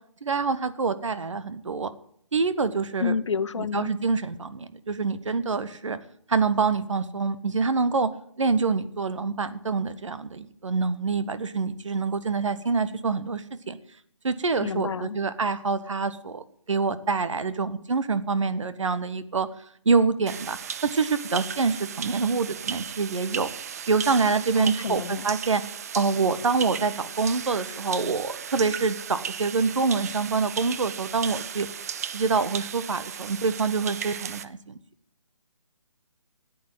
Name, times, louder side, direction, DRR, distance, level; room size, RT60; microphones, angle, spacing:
voice 1, 0.2-1.9 2.3-3.1 3.6-6.0 6.3-8.1 8.4-13.8 14.2-19.5 19.8-23.5 23.9-25.6 25.9-31.7 32.1-34.8, right 4 dB, 75° right, 13 dB, 1.4 m, -26 dB
voice 2, 3.0-3.9 14.6-15.2 24.6-25.2, left 6 dB, 70° left, 17 dB, 0.7 m, -29 dB
sound 1, 20.3-34.4, right 8 dB, 30° right, 0.5 m, -36 dB
14.0 x 8.6 x 7.9 m, 0.65 s
hypercardioid pair, 160°, 16 cm